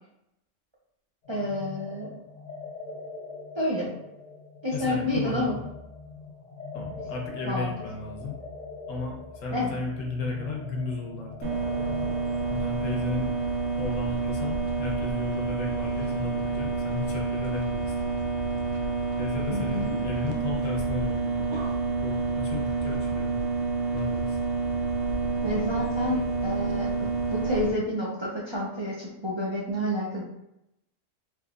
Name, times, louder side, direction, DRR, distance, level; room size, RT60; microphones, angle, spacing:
sound 1, 1.2-14.8, left 4 dB, 35° left, 0.8 m, -42 dB
voice 1, 1.3-2.1 3.6-3.9 4.6-5.5 7.4-7.7 9.5-9.8 19.5-19.9 25.4-30.2, left 1 dB, 30° right, -6 dB, 0.5 m, -29 dB
voice 2, 4.7-5.6 6.7-8.4 8.9-11.5 12.5-13.3 13.8-17.9 19.2-21.5 22.0-23.4 23.9-24.4, left 4 dB, 85° left, 0 dB, 1.2 m, -34 dB
sound 2, 11.4-27.7, right 4 dB, 70° right, 0.8 m, -28 dB
3.7 x 2.9 x 2.4 m, 0.84 s
omnidirectional pair, 1.3 m